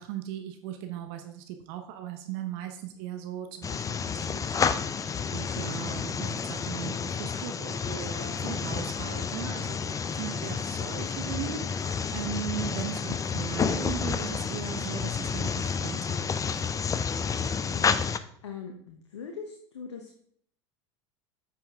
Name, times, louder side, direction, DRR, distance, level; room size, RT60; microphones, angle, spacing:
voice 1, 0.0-16.5, right 10 dB, 60° right, 6 dB, 0.9 m, -38 dB
sound 1, 3.6-18.2, left 6 dB, 20° left, 0.5 m, -30 dB
voice 2, 17.5-20.2, left 6 dB, 85° left, 3 dB, 0.9 m, -42 dB
8.5 x 6.1 x 3.5 m, 0.63 s
hypercardioid pair, 80°, 15 cm